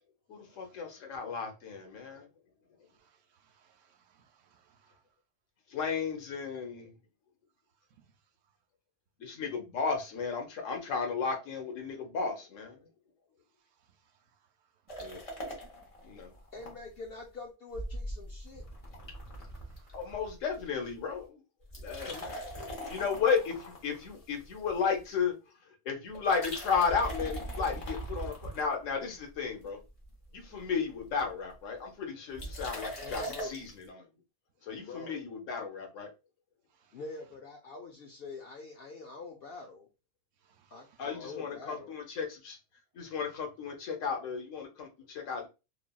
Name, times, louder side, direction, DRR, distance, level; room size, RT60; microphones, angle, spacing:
voice 1, 0.3-2.3 5.7-6.9 9.2-12.8 15.0-15.2 16.0-16.3 19.9-21.4 21.8-22.4 22.9-25.3 25.8-29.8 30.3-34.1 34.6-36.1 41.0-42.6 42.9-45.5, left 5 dB, 85° left, 1.2 m, -34 dB
voice 2, 3.0-5.0 8.0-8.1 19.5-20.0 22.2-22.3 30.4-30.7 34.7-34.9 36.7-37.0 40.4-41.0, right 7 dB, 80° right, 0.9 m, -68 dB
sound 1, 14.9-16.7 17.1-17.2 17.7-20.6 20.9-21.2 21.6-25.0 26.1-29.1 29.6-30.1 30.4-30.5 30.7-30.8 31.0-31.3 32.4-33.7, right 1 dB, 30° left, 0.8 m, -41 dB
voice 3, 16.5-18.6 33.0-33.5 34.8-35.2 36.9-39.9 40.7-41.9, left 3 dB, 60° left, 0.6 m, -44 dB
3.2 x 2.3 x 2.2 m
omnidirectional pair, 1.3 m